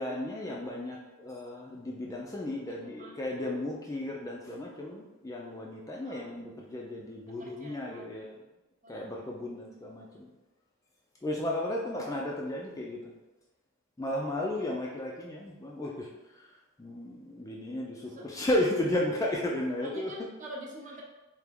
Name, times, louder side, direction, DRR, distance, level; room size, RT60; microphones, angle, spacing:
voice 1, 0.0-8.4 8.9-10.3 11.2-13.1 14.0-16.1 16.3-16.5 16.8-20.1, left 1 dB, 15° left, -2 dB, 0.3 m, -34 dB
voice 2, 2.7-3.1 6.0-6.2 7.4-8.0 8.8-9.0 18.1-18.2 19.8-21.0, right 1 dB, 35° right, -1 dB, 0.6 m, -45 dB
3.4 x 2.9 x 3.5 m, 1.1 s
head